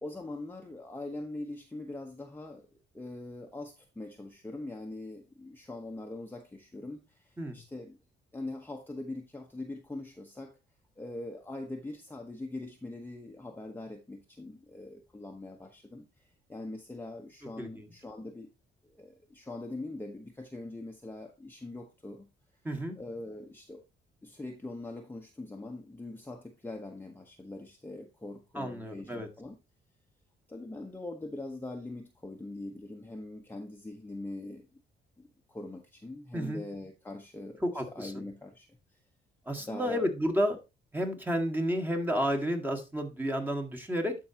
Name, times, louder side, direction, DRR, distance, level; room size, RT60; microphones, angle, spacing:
voice 1, 0.0-2.7 2.9-8.0 8.3-10.6 11.0-18.5 18.8-22.3 23.0-23.8 24.2-29.6 30.5-34.8 35.2-38.7 39.6-40.0, left 2 dB, 10° left, 1.0 m, -42 dB
voice 2, 22.6-23.0 28.6-29.3 36.3-36.6 37.6-38.2 39.5-40.6 40.9-44.2, equal, 10° right, 1.7 m, -31 dB
12.0 x 4.6 x 2.8 m
cardioid pair, 90°, 20 cm